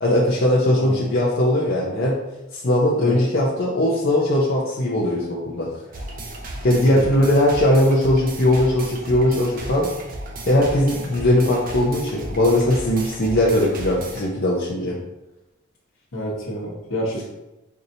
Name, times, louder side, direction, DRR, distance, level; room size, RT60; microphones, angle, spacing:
voice 1, 0.0-2.2 2.5-5.7 6.6-9.9 10.5-15.0, left 1 dB, 55° left, -5 dB, 0.6 m, -19 dB
sound 1, 5.9-14.3, right 1 dB, 45° right, 0.6 m, -35 dB
voice 2, 16.1-17.3, equal, 70° left, -3 dB, 1.1 m, -29 dB
4.6 x 2.7 x 2.7 m, 0.97 s
head